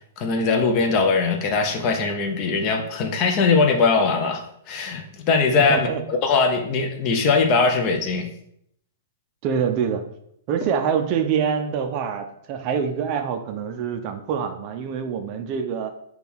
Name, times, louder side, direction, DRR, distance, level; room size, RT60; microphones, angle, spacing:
voice 1, 0.2-8.3, left 4 dB, 35° left, 4 dB, 0.5 m, -21 dB
voice 2, 5.7-6.0 9.4-10.0 10.5-15.9, right 7 dB, 35° right, 6 dB, 0.4 m, -25 dB
4.3 x 2.3 x 3.5 m, 0.72 s
hypercardioid pair, 150°, 0 cm